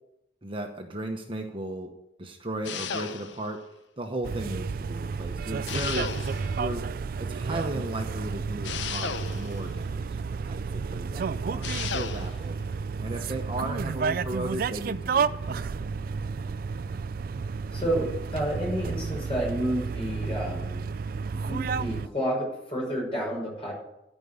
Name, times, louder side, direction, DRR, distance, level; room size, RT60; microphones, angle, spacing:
voice 1, 0.4-3.7 4.0-6.1 6.6-6.9 7.2-10.1 10.5-12.7 13.0-16.0, right 1 dB, 30° right, 3 dB, 1.0 m, -36 dB
sound 1, 2.6-3.6 5.7-6.6 8.6-9.7 11.6-12.4, left 6 dB, 85° left, 0.7 m, -34 dB
sound 2, 4.2-22.1, right 5 dB, 50° right, 0.3 m, -31 dB
voice 2, 17.7-20.9 21.3-23.7, equal, 30° left, -2 dB, 5.7 m, -30 dB
13.0 x 5.4 x 8.5 m, 0.87 s
head